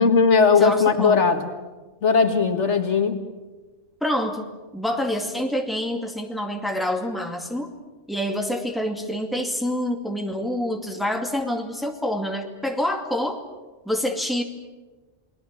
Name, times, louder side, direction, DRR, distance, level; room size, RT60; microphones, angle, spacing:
voice 1, 0.0-1.5 2.0-3.2, left 5 dB, 80° left, 6 dB, 2.1 m, -18 dB
voice 2, 0.6-1.3 4.0-4.5 4.7-7.7 8.1-13.4 13.9-14.4, left 1 dB, ahead, 3 dB, 2.3 m, -27 dB
28.5 x 20.5 x 7.5 m, 1.3 s
omnidirectional pair, 1.2 m